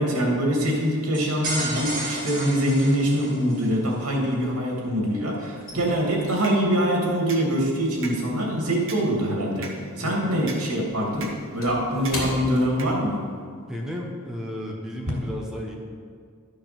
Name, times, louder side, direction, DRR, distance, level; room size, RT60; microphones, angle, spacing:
voice 1, 0.0-9.7 10.0-13.2, equal, 85° right, -2 dB, 2.6 m, -24 dB
sound 1, 1.1-3.7, right 2 dB, 40° right, 2.3 m, -32 dB
sound 2, 2.1-2.6 2.9-4.9 5.2-9.9 10.1-13.5 13.8-14.0 14.4-14.7, left 1 dB, 60° left, 3.3 m, -40 dB
sound 3, 6.4-13.4, right 2 dB, 60° right, 1.3 m, -41 dB
voice 2, 10.0-10.3 11.8-12.1 13.7-15.8, equal, 5° right, -2 dB, 1.0 m, -34 dB
12.0 x 6.6 x 6.0 m, 2.1 s
head